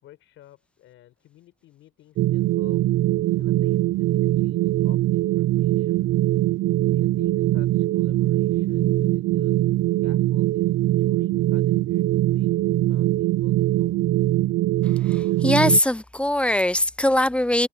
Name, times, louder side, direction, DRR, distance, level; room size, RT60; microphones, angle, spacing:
voice 1, 0.0-2.8 3.3-6.1 6.9-9.6 10.0-14.1, left 14 dB, 85° left, 4.9 m, -52 dB
sound 1, 2.2-15.8, right 15 dB, 80° right, 0.5 m, -22 dB
voice 2, 15.1-17.7, left 1 dB, 5° left, 0.5 m, -21 dB
cardioid pair, 90°, 20 cm